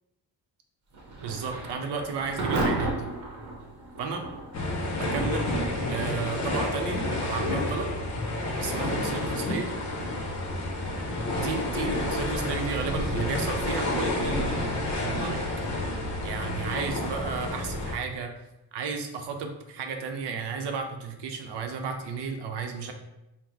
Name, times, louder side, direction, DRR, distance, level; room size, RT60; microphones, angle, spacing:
Thunder / Rain, 0.9-17.6, right 2 dB, 45° right, 0.9 m, -38 dB
voice 1, 1.2-3.1 4.0-4.3 5.0-5.5 5.9-7.9 8.6-9.7 11.3-15.4 16.2-18.3 18.7-22.9, right 5 dB, 80° right, 5 dB, 0.7 m, -33 dB
sound 1, 4.5-17.9, left 1 dB, 40° left, 0.8 m, -30 dB
3.9 x 2.1 x 4.4 m, 0.92 s
cardioid pair, 135°, 41 cm